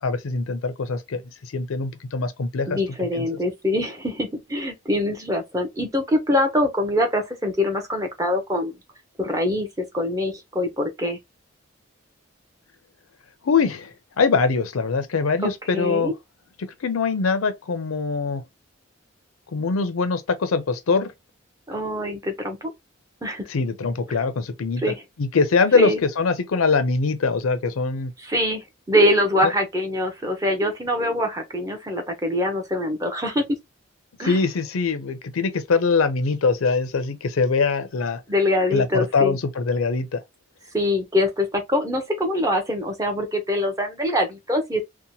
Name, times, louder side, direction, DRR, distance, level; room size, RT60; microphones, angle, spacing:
voice 1, 0.0-2.8 3.2-3.3 13.4-16.1 16.8-18.4 19.5-21.1 23.5-24.8 25.2-28.1 29.4-29.5 34.2-38.2 38.7-40.2, left 4 dB, 85° left, 0.5 m, -23 dB
voice 2, 2.7-8.7 9.2-11.2 15.4-16.1 21.7-22.7 23.2-23.4 24.8-25.0 25.7-26.0 28.2-33.4 34.2-34.4 38.3-39.4 40.7-44.8, left 1 dB, 15° right, 0.5 m, -24 dB
2.9 x 2.1 x 2.6 m
head